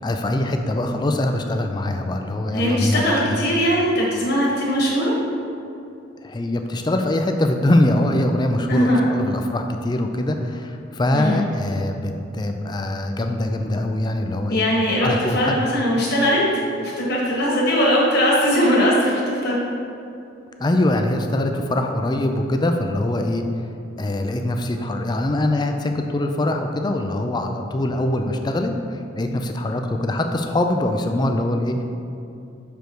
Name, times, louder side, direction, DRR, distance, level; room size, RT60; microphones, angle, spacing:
voice 1, 0.0-3.4 6.2-14.7 15.0-15.5 20.6-23.4 24.0-31.8, left 1 dB, 20° left, 5 dB, 0.4 m, -23 dB
voice 2, 2.5-5.2 8.7-9.0 11.1-11.4 14.5-19.5, equal, 50° left, -4 dB, 1.6 m, -20 dB
6.2 x 5.2 x 4.6 m, 2.7 s
head